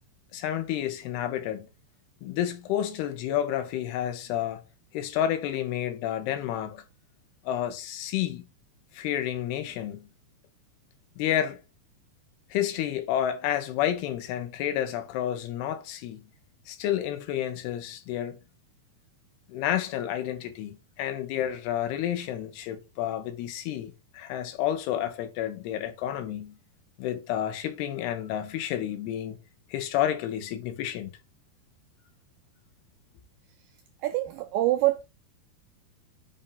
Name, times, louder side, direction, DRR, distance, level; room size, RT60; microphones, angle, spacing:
voice 1, 0.3-1.7 2.2-4.6 4.9-6.8 7.4-8.5 8.9-10.1 11.2-11.6 12.5-16.2 16.7-18.4 19.5-26.6 27.0-29.4 29.7-31.1, left 11 dB, 90° left, 2.9 m, -30 dB
voice 2, 34.0-35.0, right 16 dB, 85° right, 2.0 m, -25 dB
7.3 x 2.6 x 5.5 m
omnidirectional pair, 4.5 m